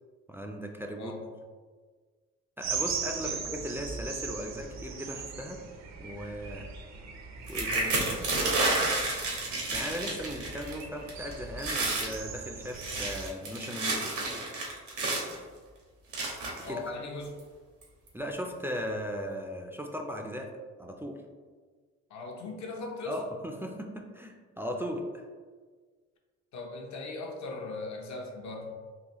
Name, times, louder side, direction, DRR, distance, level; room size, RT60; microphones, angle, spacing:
voice 1, 0.3-1.1 2.6-5.6 6.0-6.7 7.5-8.1 9.7-14.2 16.7-16.8 18.1-20.5 20.8-21.2 23.1-25.2, equal, 10° right, 1 dB, 0.3 m, -37 dB
sound 1, 2.6-13.3, right 5 dB, 60° right, 0.6 m, -39 dB
sound 2, 7.5-10.8 11.1-11.3 11.6-12.1 12.7-15.4 16.1-16.7 17.4-17.5 17.8-18.1, right 2 dB, 85° right, 1.1 m, -30 dB
voice 2, 16.6-17.4 22.1-23.2 26.5-28.7, left 3 dB, 70° left, 1 dB, 0.7 m, -39 dB
3.8 x 2.5 x 2.9 m, 1.5 s
cardioid pair, 90°, 30 cm